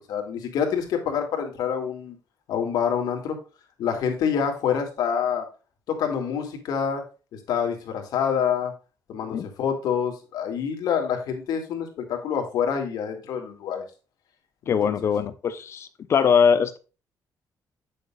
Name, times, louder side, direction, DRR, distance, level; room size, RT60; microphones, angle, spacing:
voice 1, 0.0-2.2 2.5-3.4 3.8-5.5 5.9-7.0 7.3-8.7 9.1-13.8 14.7-14.9, left 7 dB, 75° left, 3 dB, 2.2 m, -27 dB
voice 2, 14.7-16.8, left 6 dB, 40° left, 12 dB, 0.8 m, -22 dB
8.5 x 6.7 x 2.4 m, 0.32 s
cardioid pair, 165°, 7 cm